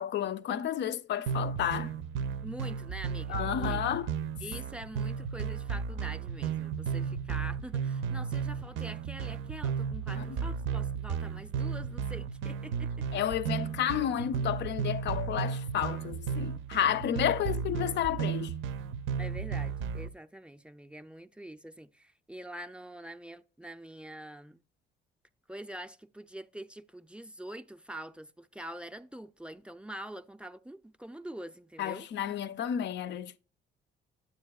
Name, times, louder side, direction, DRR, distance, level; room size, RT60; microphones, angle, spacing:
voice 1, 0.0-1.9 3.3-4.1 10.1-10.4 13.1-18.5 31.8-33.4, left 10 dB, 65° left, 0.5 m, -31 dB
sound 1, 1.3-20.1, right 7 dB, 80° right, 0.5 m, -34 dB
voice 2, 2.4-3.8 4.4-13.2 17.4-17.5 19.2-24.6 25.5-32.1, right 1 dB, 5° right, 0.4 m, -45 dB
9.6 x 8.0 x 2.3 m
cardioid pair, 90°, 20 cm